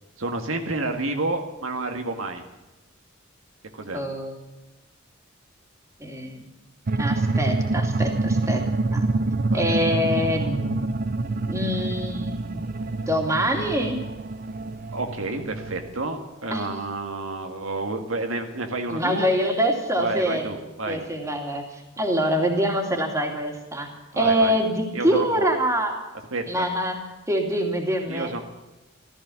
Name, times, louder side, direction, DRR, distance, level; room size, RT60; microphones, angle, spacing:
voice 1, 0.2-2.4 3.7-4.0 9.5-9.8 14.9-19.3 20.0-21.0 24.1-24.6 24.9-25.5 26.3-26.7 28.1-28.4, right 2 dB, 80° right, 4 dB, 1.8 m, -30 dB
voice 2, 3.9-4.4 6.0-6.5 7.0-8.6 8.9-9.1 9.5-11.0 11.5-12.6 13.1-14.0 16.5-16.7 18.9-20.5 20.9-23.9 24.2-25.9 26.5-28.4, equal, 15° right, 2 dB, 2.6 m, -25 dB
sound 1, 6.9-16.1, right 2 dB, 45° right, 0.6 m, -26 dB
15.0 x 13.5 x 7.1 m, 1.1 s
head